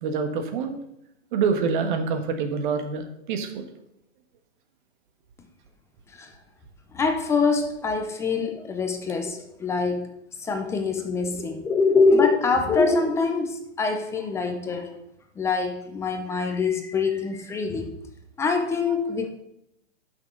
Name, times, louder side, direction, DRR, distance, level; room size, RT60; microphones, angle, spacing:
voice 1, 0.0-0.8 1.3-3.6 11.2-11.5, right 5 dB, 45° right, 6 dB, 1.4 m, -26 dB
voice 2, 6.9-10.1 10.4-14.9 15.4-17.9 18.4-19.3, left 4 dB, 10° left, 5 dB, 0.5 m, -24 dB
11.5 x 6.1 x 3.9 m, 0.79 s
hypercardioid pair, 135°, 35 cm